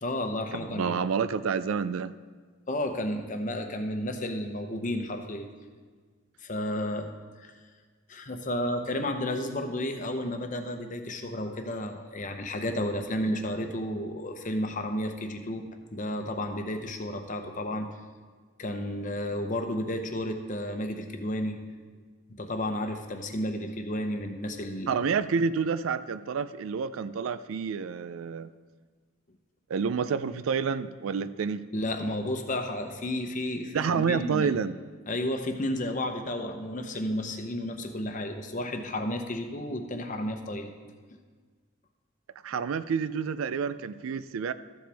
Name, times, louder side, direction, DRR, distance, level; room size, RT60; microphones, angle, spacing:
voice 1, 0.0-1.0 2.7-5.5 6.4-7.1 7.4-7.5 8.1-15.6 15.9-17.9 18.6-21.6 22.3-25.0 31.7-34.5 35.1-40.7, left 1 dB, 40° left, 6 dB, 0.8 m, -32 dB
voice 2, 0.5-2.1 24.9-28.5 29.7-31.6 33.7-34.7 42.4-44.5, right 6 dB, 75° right, 14 dB, 0.4 m, -29 dB
13.5 x 7.6 x 3.4 m, 1.5 s
head